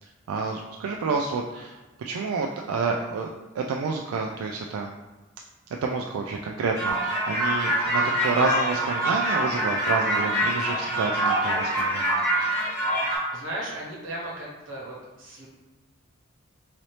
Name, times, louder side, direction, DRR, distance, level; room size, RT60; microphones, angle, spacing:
voice 1, 0.0-3.3 3.5-4.9 5.8-12.2, right 4 dB, 85° right, 0 dB, 0.3 m, -29 dB
sound 1, 6.7-13.2, right 1 dB, 10° left, 1.2 m, -25 dB
voice 2, 13.3-15.5, right 1 dB, 60° right, -5 dB, 1.2 m, -36 dB
4.0 x 2.8 x 3.2 m, 1.2 s
head